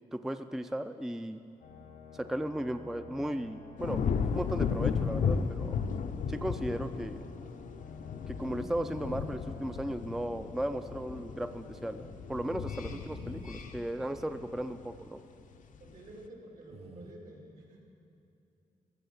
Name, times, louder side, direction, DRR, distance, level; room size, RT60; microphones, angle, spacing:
voice 1, 0.1-1.4 2.1-4.0 4.3-5.8 6.3-7.3 8.3-15.2, right 1 dB, 5° right, 9 dB, 0.3 m, -36 dB
sound 1, 1.6-14.9, left 5 dB, 85° left, 1.2 m, -51 dB
sound 2, 3.8-15.1 15.5-16.0, left 6 dB, 65° left, 0.6 m, -35 dB
sound 3, 4.2-5.1 6.2-6.3 6.9-7.1 8.4-9.4 10.3-10.5 11.6-11.7 12.9-13.7 16.7-17.1, right 3 dB, 45° right, 0.9 m, -51 dB
voice 2, 13.2-13.6 15.8-17.8, right 1 dB, 75° right, -1 dB, 2.7 m, -51 dB
15.5 x 6.6 x 7.9 m, 2.7 s
wide cardioid pair, 115°, 14 cm